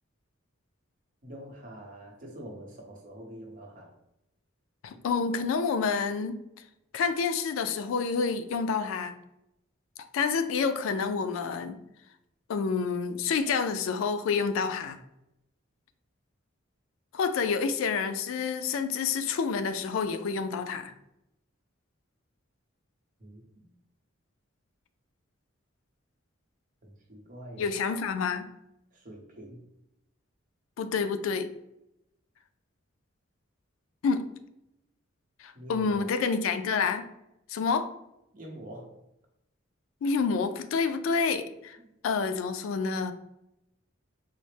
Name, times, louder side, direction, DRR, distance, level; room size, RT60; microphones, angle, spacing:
voice 1, 1.2-3.9 23.2-23.7 26.8-27.7 28.9-29.6 35.5-36.1 38.3-39.0, right 1 dB, 40° right, 0 dB, 0.8 m, -45 dB
voice 2, 4.8-6.3 6.9-9.1 10.1-11.8 12.5-15.0 17.1-20.9 27.6-28.5 30.8-31.5 34.0-34.2 35.4-37.0 37.5-37.9 40.0-41.8 42.0-43.1, left 5 dB, 80° left, 9 dB, 0.3 m, -28 dB
4.1 x 2.0 x 3.2 m, 0.85 s
head